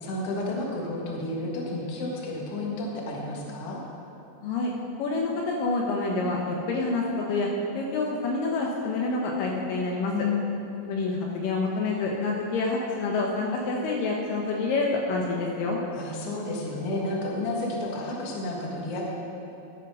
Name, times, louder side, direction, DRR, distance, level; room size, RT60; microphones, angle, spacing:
voice 1, 0.0-3.8 10.1-10.7 15.9-19.1, left 2 dB, 50° left, -2 dB, 2.3 m, -31 dB
voice 2, 4.4-4.7 5.0-7.5 7.7-10.1 10.9-15.8, left 3 dB, 75° left, -1 dB, 2.5 m, -27 dB
13.0 x 7.9 x 5.4 m, 2.9 s
omnidirectional pair, 4.1 m